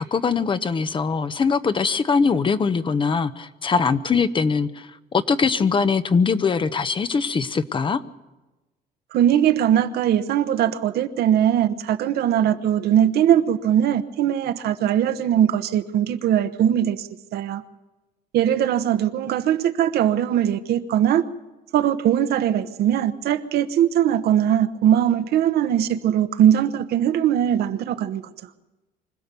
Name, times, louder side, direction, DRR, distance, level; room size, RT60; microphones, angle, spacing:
voice 1, 0.0-8.0, left 5 dB, 30° left, 13 dB, 0.8 m, -22 dB
voice 2, 9.1-17.6 18.3-21.3 21.7-28.2, right 10 dB, 70° right, 10 dB, 1.0 m, -20 dB
25.0 x 16.0 x 6.9 m, 1.1 s
cardioid pair, 110°, 17 cm